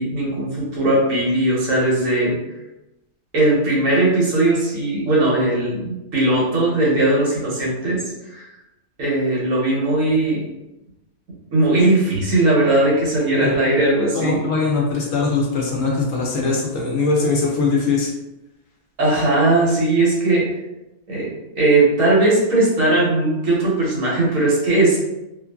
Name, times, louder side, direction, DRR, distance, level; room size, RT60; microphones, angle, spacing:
voice 1, 0.0-2.3 3.3-8.0 8.3-8.4 9.0-10.4 11.5-14.4 19.0-20.5 21.1-21.3 21.6-25.0, right 2 dB, 60° right, -5 dB, 1.2 m, -18 dB
voice 2, 14.1-18.1, left 4 dB, 70° left, -2 dB, 0.9 m, -21 dB
2.8 x 2.5 x 2.2 m, 0.94 s
omnidirectional pair, 1.6 m